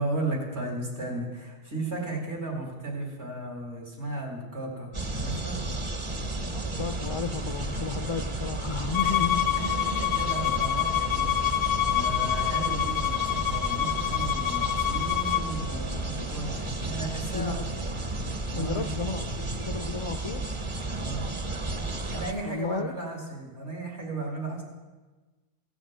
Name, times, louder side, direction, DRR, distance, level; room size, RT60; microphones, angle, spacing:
voice 1, 0.0-5.6 9.0-9.2 9.5-17.6 18.5-18.9 20.9-21.2 22.1-24.6, right 2 dB, 80° right, 0 dB, 2.9 m, -35 dB
sound 1, 4.9-22.3, right 2 dB, 30° right, 0.7 m, -32 dB
voice 2, 6.5-9.6 17.3-17.9 18.5-20.4 22.4-22.9, left 5 dB, 45° left, 8 dB, 0.4 m, -33 dB
Bowed string instrument, 8.9-15.5, left 12 dB, 80° left, 0.9 m, -27 dB
15.5 x 7.2 x 7.4 m, 1.3 s
omnidirectional pair, 1.1 m